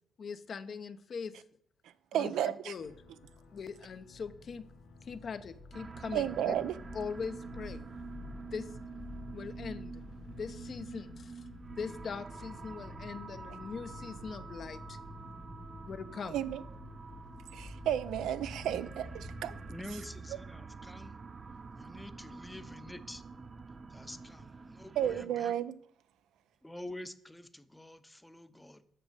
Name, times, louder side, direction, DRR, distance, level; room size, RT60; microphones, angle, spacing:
voice 1, 0.2-1.4 2.1-2.3 2.7-2.9 3.5-4.6 5.0-6.5 6.9-7.8 8.5-8.7 9.3-10.0 10.4-11.5 11.8-14.8 15.9-16.4, left 5 dB, 50° left, 0.7 m, -41 dB
voice 2, 2.1-2.7 6.1-6.7 16.3-16.6 17.5-19.5 25.0-25.7, right 10 dB, 80° right, 0.5 m, -32 dB
sound 1, 2.8-19.8, left 3 dB, 70° left, 2.0 m, -50 dB
sound 2, 5.7-25.3, right 5 dB, 35° right, 0.5 m, -47 dB
voice 3, 19.7-21.1 21.7-23.2 23.9-25.5 26.6-28.9, left 1 dB, 10° left, 0.7 m, -47 dB
7.8 x 6.1 x 6.5 m
cardioid pair, 90°, 0 cm